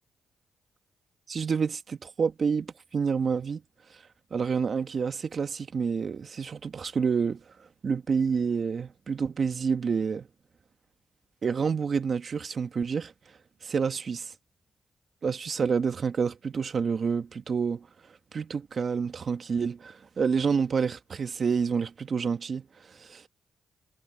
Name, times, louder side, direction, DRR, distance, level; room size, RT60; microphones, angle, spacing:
voice 1, 1.3-3.6 4.3-7.4 7.8-10.3 11.4-13.1 13.6-14.3 15.2-17.9 18.3-23.3, right 6 dB, 55° right, 1.9 m, -28 dB
supercardioid pair, 60°, 0 cm